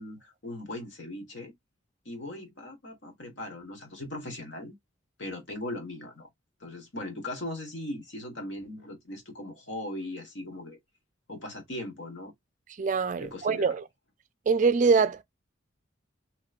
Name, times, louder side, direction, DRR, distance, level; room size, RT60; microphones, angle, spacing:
voice 1, 0.0-1.5 2.0-4.7 5.2-6.3 6.6-10.8 11.3-12.3 13.2-13.7, left 1 dB, 65° left, 1.4 m, -39 dB
voice 2, 12.8-13.8 14.5-15.2, right 5 dB, 40° right, 0.4 m, -24 dB
3.1 x 3.0 x 2.4 m
head